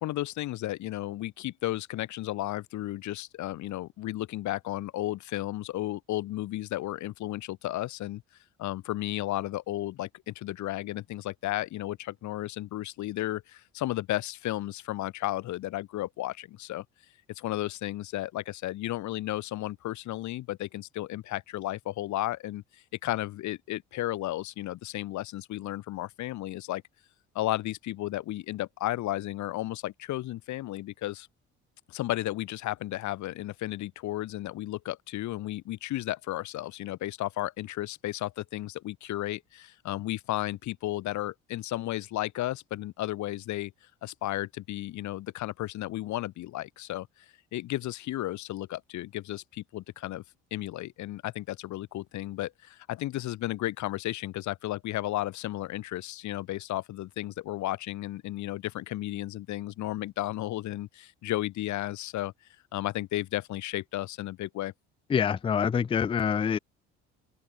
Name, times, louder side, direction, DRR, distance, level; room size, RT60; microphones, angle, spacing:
voice 1, 0.0-8.2 8.6-16.8 17.3-26.8 27.3-31.3 31.9-43.7 44.0-47.1 47.5-50.2 50.5-62.3 62.7-64.7, left 15 dB, 60° left, 1.5 m, -33 dB
voice 2, 65.1-66.6, left 7 dB, 15° left, 0.4 m, -26 dB
open air
hypercardioid pair, 60°, 33 cm